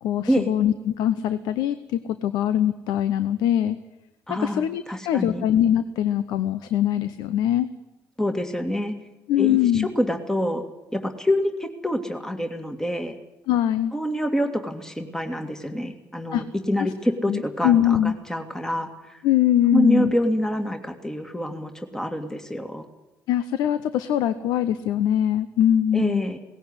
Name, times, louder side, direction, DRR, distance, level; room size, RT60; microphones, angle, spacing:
voice 1, 0.0-3.8 4.3-7.7 9.3-9.9 13.5-13.9 16.3-16.4 17.3-18.1 19.2-20.1 23.3-26.3, left 11 dB, 80° left, 13 dB, 0.8 m, -22 dB
voice 2, 4.3-5.4 8.2-8.9 9.4-10.6 10.9-13.2 13.9-19.2 19.7-22.9 25.9-26.4, equal, 10° left, 5 dB, 2.2 m, -26 dB
18.0 x 16.0 x 9.8 m, 1.0 s
supercardioid pair, 75°, 7 cm